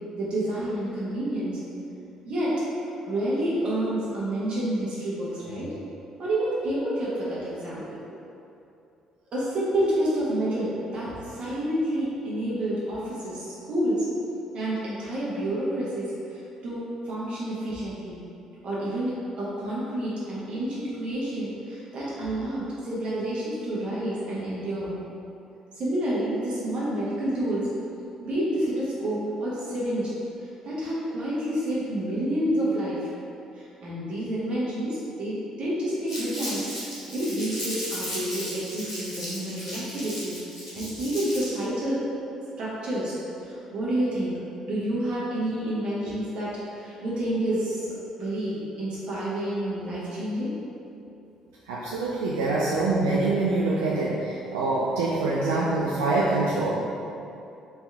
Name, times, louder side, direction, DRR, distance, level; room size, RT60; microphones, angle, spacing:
voice 1, 0.2-1.6 2.2-2.6 3.1-5.7 6.2-8.0 9.3-14.0 14.5-18.2 18.6-24.9 25.7-27.7 28.2-30.1 30.6-33.1 33.5-40.4 40.7-42.0 42.6-44.4 44.7-50.5, right 1 dB, 50° right, -8 dB, 1.2 m, -29 dB
Crumpling crinkling, 36.1-41.6, equal, 90° left, 1.4 m, -35 dB
voice 2, 51.7-56.7, right 2 dB, 75° right, -6 dB, 0.4 m, -25 dB
4.3 x 3.5 x 3.5 m, 2.7 s
figure-of-eight pair, 45°, 2 cm